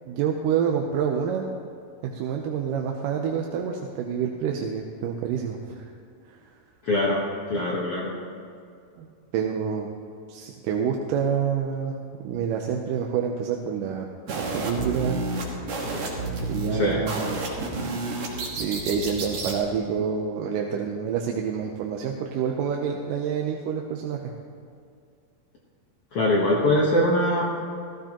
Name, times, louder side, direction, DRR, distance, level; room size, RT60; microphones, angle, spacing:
voice 1, 0.1-1.4 2.0-5.9 6.3-6.4 9.0-9.1 9.3-9.9 10.3-12.0 12.2-15.2 16.5-17.4 17.7-18.0 18.5-24.2, right 7 dB, 75° right, 1 dB, 2.2 m, -28 dB
voice 2, 6.8-7.2 7.5-8.1 16.7-17.0 26.1-27.4, left 1 dB, 65° left, -3 dB, 1.5 m, -22 dB
sound 1, 14.3-19.6, right 2 dB, 55° right, 2.5 m, -30 dB
15.0 x 15.0 x 3.0 m, 2.4 s
omnidirectional pair, 4.1 m